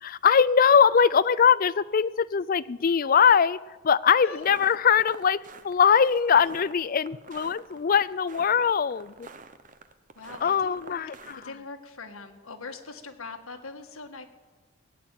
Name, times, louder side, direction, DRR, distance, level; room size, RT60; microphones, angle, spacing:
voice 1, 0.0-3.6 3.8-5.4 5.6-9.3 10.4-11.5, left 7 dB, 40° left, 18 dB, 0.4 m, -22 dB
sound 1, 4.3-11.5, right 4 dB, 35° right, 0.8 m, -47 dB
voice 2, 10.1-11.0 11.3-14.3, left 4 dB, 80° left, 5 dB, 1.6 m, -42 dB
17.0 x 8.8 x 9.0 m, 1.3 s
head